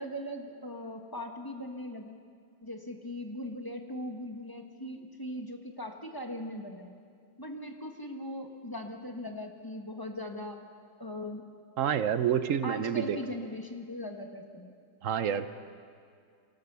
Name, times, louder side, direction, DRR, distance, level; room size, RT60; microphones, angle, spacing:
voice 1, 0.0-2.2 2.6-7.0 7.4-10.6 11.0-11.5 12.6-14.7, left 1 dB, 15° left, 3 dB, 1.2 m, -39 dB
voice 2, 11.8-13.2 15.0-15.5, right 9 dB, 55° right, 11 dB, 0.9 m, -28 dB
24.0 x 18.0 x 6.9 m, 2.2 s
omnidirectional pair, 2.0 m